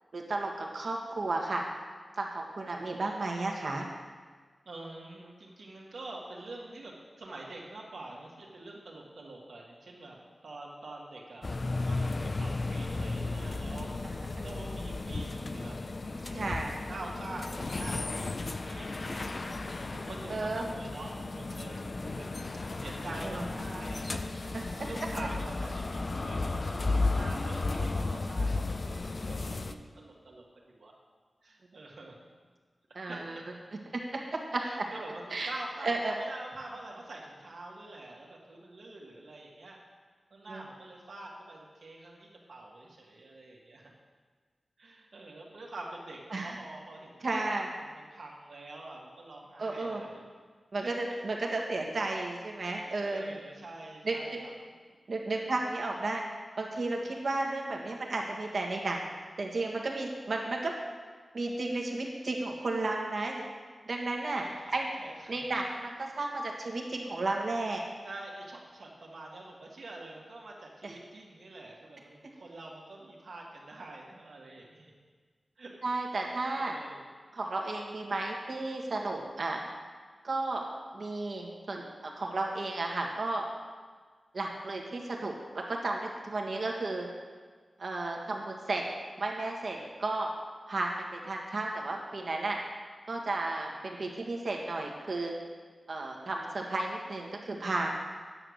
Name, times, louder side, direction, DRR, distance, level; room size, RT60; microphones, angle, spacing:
voice 1, 0.1-1.6 2.2-3.9 16.3-16.7 20.3-20.6 23.2-23.4 24.5-24.9 33.0-33.4 34.5-34.6 35.3-35.5 35.8-36.2 40.5-40.6 46.3-46.6 47.2-47.7 49.6-50.0 50.7-53.4 54.0-54.4 55.1-56.2 56.6-59.1 59.4-60.7 61.3-63.4 63.9-64.4 64.7-64.9 65.3-67.8 70.8-71.0 75.8-76.7 77.3-79.6 80.2-80.6 80.9-83.5 84.3-87.1 87.8-88.8 89.2-90.3 90.7-92.6 93.1-95.3 95.9-97.9, right 2 dB, 65° right, 0 dB, 1.6 m, -33 dB
voice 2, 4.7-10.2 10.4-15.8 16.3-22.3 22.8-30.9 31.4-32.2 33.1-33.2 34.6-39.8 40.3-43.9 44.8-47.4 47.9-50.2 50.8-50.9 52.7-54.5 55.3-55.6 64.3-65.5 68.0-74.9 75.6-75.7 76.1-77.1, right 2 dB, 80° right, -2 dB, 1.9 m, -46 dB
sound 1, 11.4-29.7, left 3 dB, 45° left, 0.5 m, -34 dB
9.8 x 6.9 x 6.4 m, 1.5 s
wide cardioid pair, 85°, 0 cm